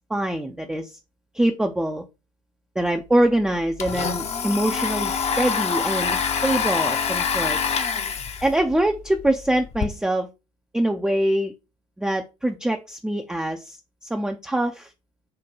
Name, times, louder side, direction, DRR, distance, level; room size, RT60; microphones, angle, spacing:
voice 1, 0.1-1.0 1.3-2.0 2.8-7.6 8.4-10.3 10.7-11.5 12.0-13.8 14.1-14.9, right 1 dB, 5° right, 0.4 m, -24 dB
Domestic sounds home sounds, 2.9-3.0 3.2-9.9, left 6 dB, 35° left, 0.7 m, -26 dB
3.9 x 2.2 x 4.4 m
hypercardioid pair, 60°, 17 cm